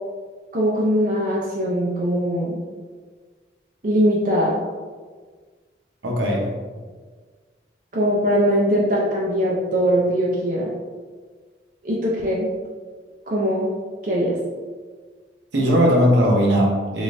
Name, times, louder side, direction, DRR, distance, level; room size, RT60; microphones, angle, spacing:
voice 1, 0.5-2.6 3.8-4.6 7.9-10.7 11.8-12.5 13.3-13.7 14.0-14.4, equal, 45° right, -5 dB, 0.5 m, -21 dB
voice 2, 6.0-6.5 15.5-17.0, equal, 75° right, -2 dB, 0.8 m, -18 dB
3.6 x 3.3 x 2.5 m, 1.5 s
head